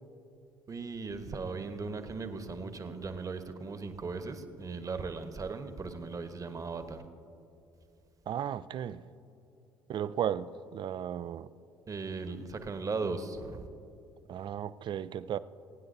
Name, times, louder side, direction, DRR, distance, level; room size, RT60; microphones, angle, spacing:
voice 1, 0.7-7.0 11.9-13.7, right 4 dB, 35° right, 8 dB, 1.1 m, -37 dB
voice 2, 8.3-9.0 9.9-11.5 14.3-15.4, right 9 dB, 50° right, 16 dB, 0.4 m, -35 dB
28.0 x 9.5 x 2.7 m, 2.6 s
hypercardioid pair, 55°, 11 cm